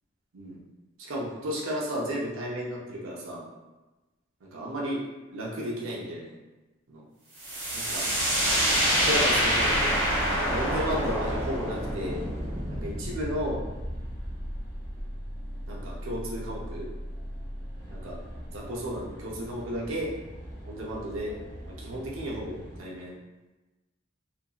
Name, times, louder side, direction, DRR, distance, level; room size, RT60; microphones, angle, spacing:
voice 1, 1.0-3.5 4.4-5.0 5.3-6.3 6.9-7.0 7.7-8.1 9.0-10.0 10.4-12.2 12.7-13.7 15.7-16.9 17.9-18.2 18.5-20.1 20.7-21.4 21.7-23.2, equal, 85° right, -3 dB, 0.6 m, -33 dB
sound 1, 7.4-15.0, equal, 70° right, 1.0 m, -27 dB
sound 2, 9.7-22.8, equal, 40° right, 1.0 m, -39 dB
2.8 x 2.5 x 2.3 m, 1.1 s
head